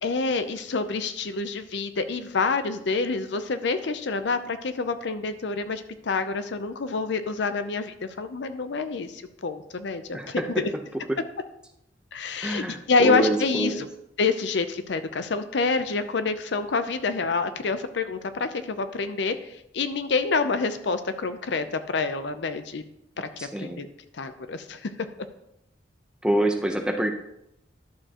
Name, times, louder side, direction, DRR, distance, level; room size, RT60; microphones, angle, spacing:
voice 1, 0.0-10.7 12.1-13.9 14.2-22.8 23.2-23.3 23.6-23.9 24.1-24.9, left 4 dB, 65° left, 11 dB, 0.6 m, -27 dB
voice 2, 12.4-12.8 13.0-13.8 23.4-23.8 26.2-27.1, right 1 dB, 5° right, 4 dB, 0.7 m, -26 dB
11.0 x 6.9 x 2.9 m, 0.81 s
head